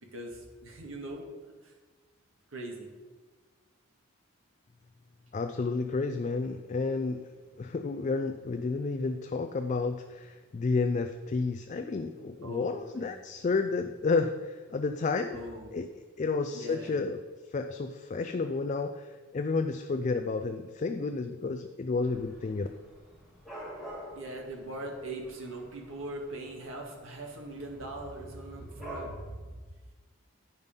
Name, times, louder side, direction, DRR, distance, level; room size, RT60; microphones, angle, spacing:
voice 1, 0.1-1.3 2.5-2.9 12.4-13.2 15.3-15.9 16.5-16.9 24.2-29.3, right 1 dB, 75° right, 1 dB, 1.7 m, -41 dB
voice 2, 5.3-7.2 7.6-15.4 15.7-15.9 16.2-17.2 17.5-22.7, left 4 dB, 35° left, 7 dB, 0.3 m, -31 dB
Dog / Cat, 22.0-29.1, right 1 dB, ahead, 2.2 m, -48 dB
9.8 x 5.3 x 5.3 m, 1.4 s
head